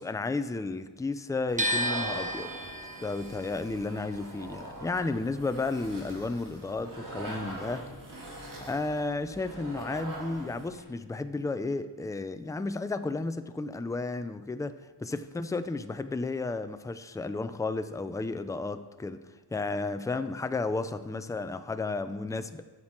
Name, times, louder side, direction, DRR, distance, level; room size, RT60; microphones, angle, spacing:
voice 1, 0.0-2.5 3.0-7.9 8.6-14.7 15.0-19.2 19.5-22.6, left 3 dB, 10° left, 0.4 m, -33 dB
sound 1, 1.5-10.8, right 1 dB, 50° right, 2.1 m, -42 dB
sound 2, 1.6-7.6 7.9-9.2, right 1 dB, 20° right, 0.8 m, -35 dB
12.0 x 7.6 x 4.4 m
wide cardioid pair, 95°, 43 cm